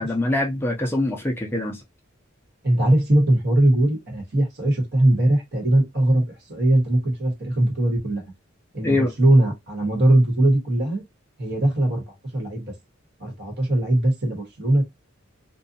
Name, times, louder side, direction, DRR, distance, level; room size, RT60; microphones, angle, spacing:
voice 1, 0.0-1.8 8.8-9.1, left 2 dB, 10° left, 0.4 m, -24 dB
voice 2, 2.6-8.2 8.7-11.0 11.4-12.7 13.2-14.8, right 1 dB, 55° right, 1.3 m, -20 dB
2.6 x 2.3 x 2.6 m
head